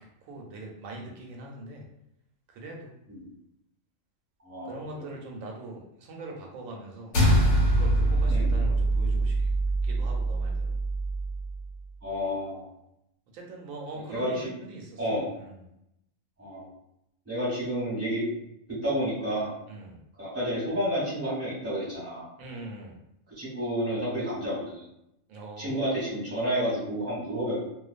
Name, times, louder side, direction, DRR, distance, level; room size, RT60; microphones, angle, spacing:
voice 1, 0.0-1.9 2.5-2.9 4.6-7.2 7.7-9.4 9.8-10.8 13.3-15.0 15.4-15.6 19.7-20.0 22.4-23.0 25.3-25.8, right 2 dB, 90° right, 0 dB, 1.0 m, -42 dB
voice 2, 4.4-4.7 8.3-8.5 12.0-12.7 14.1-14.5 15.0-15.3 16.4-16.6 17.2-18.2 18.7-19.6 20.2-22.3 23.4-24.8 25.6-27.6, equal, 10° right, -8 dB, 1.1 m, -30 dB
sound 1, 7.1-11.7, right 1 dB, 85° left, 1.1 m, -24 dB
2.4 x 2.1 x 2.4 m, 0.82 s
omnidirectional pair, 1.4 m